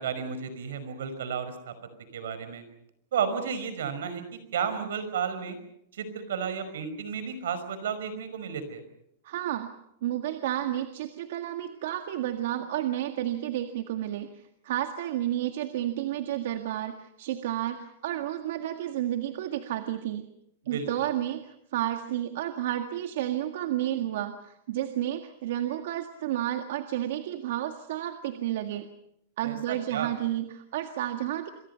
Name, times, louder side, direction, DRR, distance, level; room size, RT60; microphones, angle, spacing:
voice 1, 0.0-1.7 2.1-2.6 3.1-5.6 5.9-8.8 20.6-21.1 29.4-30.1, right 7 dB, 85° right, 11 dB, 5.3 m, -32 dB
voice 2, 9.2-9.7 10.0-20.3 20.7-28.9 29.4-31.5, right 12 dB, 65° right, 6 dB, 1.7 m, -31 dB
27.5 x 23.5 x 5.7 m, 0.77 s
supercardioid pair, 155°, 0 cm